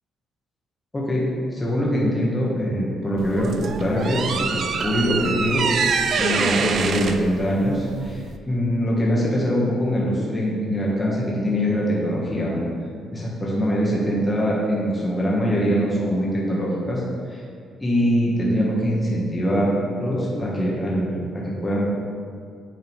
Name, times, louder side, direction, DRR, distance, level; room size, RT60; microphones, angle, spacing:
voice 1, 0.9-1.2 1.5-5.6 6.2-8.2 8.5-12.6 13.1-17.0 17.3-17.4 17.8-19.7 20.0-21.8, equal, 20° left, -5 dB, 1.5 m, -23 dB
sound 1, 3.2-8.4, right 5 dB, 60° right, 0.5 m, -25 dB
9.3 x 3.7 x 4.7 m, 2.2 s
cardioid pair, 90°, 0 cm